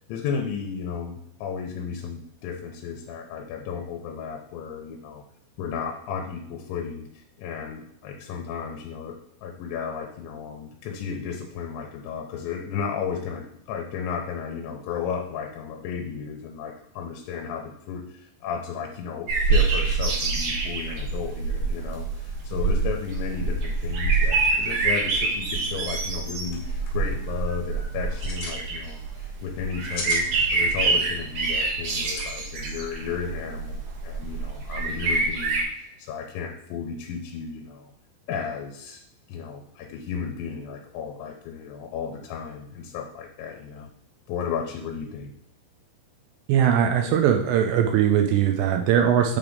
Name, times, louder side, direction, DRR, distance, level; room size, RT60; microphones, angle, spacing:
voice 1, 0.1-5.2 5.6-30.3 30.5-37.9 38.3-39.0 39.3-43.9 44.3-45.3, left 6 dB, 85° left, 1 dB, 2.9 m, -34 dB
sound 1, 19.3-35.6, right 4 dB, 70° right, 2.1 m, -26 dB
sound 2, 26.4-26.6 26.9-27.2 28.0-28.6 29.6-30.3 32.0-32.3, left 3 dB, 65° left, 1.8 m, -34 dB
voice 2, 46.5-49.4, right 9 dB, 85° right, 4 dB, 2.6 m, -20 dB
8.9 x 3.4 x 3.9 m, 0.72 s
omnidirectional pair, 5.4 m